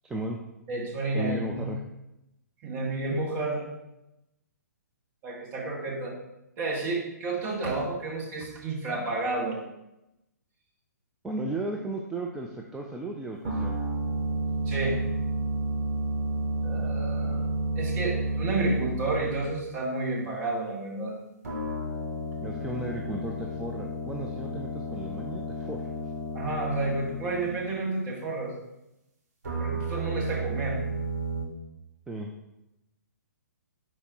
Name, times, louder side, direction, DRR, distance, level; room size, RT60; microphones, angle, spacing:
voice 1, 0.0-0.4 1.1-1.8 11.2-13.8 22.4-25.9 32.1-32.3, right 2 dB, 5° right, -1 dB, 0.3 m, -35 dB
voice 2, 0.7-1.7 2.6-3.7 5.2-6.1 6.6-9.6 14.7-15.0 16.6-17.5 17.8-21.1 26.3-28.5 29.6-30.8, right 2 dB, 30° right, -3 dB, 1.6 m, -30 dB
sound 1, 13.4-19.7 21.4-27.7 29.4-31.4, right 1 dB, 55° right, 2.2 m, -31 dB
5.0 x 4.2 x 4.6 m, 0.91 s
figure-of-eight pair, 125°, 10 cm